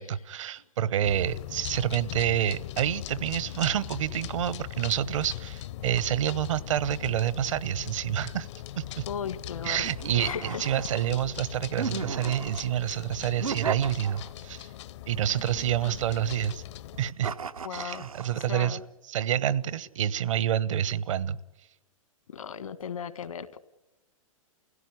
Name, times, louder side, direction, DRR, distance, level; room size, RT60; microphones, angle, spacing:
voice 1, 0.0-8.5 8.8-9.0 9.6-14.7 15.1-16.6 17.0-17.3 17.7-18.8 19.1-21.4, right 10 dB, 65° right, 18 dB, 1.1 m, -28 dB
sound 1, 1.0-17.1, left 13 dB, 55° left, 0.8 m, -40 dB
voice 2, 9.1-9.9 10.1-10.7 15.8-16.3 17.6-18.1 18.4-18.8 22.3-23.6, left 7 dB, 75° left, 14 dB, 1.6 m, -36 dB
sound 2, 9.8-11.2 11.8-12.7 13.4-14.5 15.3-16.4 17.2-18.4, right 5 dB, 90° right, 1.1 m, -36 dB
28.5 x 16.5 x 9.7 m, 1.1 s
hypercardioid pair, 115°, 18 cm